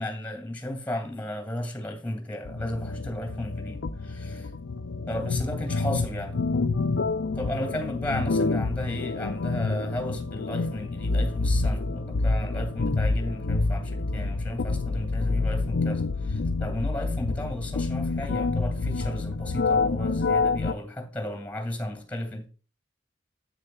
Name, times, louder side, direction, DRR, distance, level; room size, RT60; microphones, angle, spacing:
voice 1, 0.0-4.5 5.1-6.4 7.3-22.5, left 1 dB, 10° left, 2.4 m, -34 dB
sound 1, 2.5-20.7, left 3 dB, 90° left, 0.5 m, -28 dB
9.8 x 8.4 x 2.3 m
head